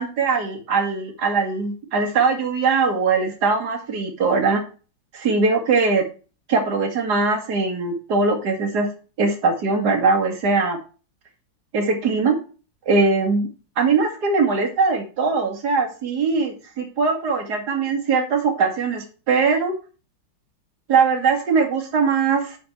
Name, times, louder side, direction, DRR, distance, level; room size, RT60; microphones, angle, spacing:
voice 1, 0.0-4.6 5.1-6.0 6.5-8.9 9.2-10.8 11.7-12.4 12.9-13.5 13.8-19.7 20.9-22.6, right 4 dB, 60° right, 3 dB, 2.6 m, -21 dB
9.4 x 5.5 x 4.5 m, 0.35 s
omnidirectional pair, 2.0 m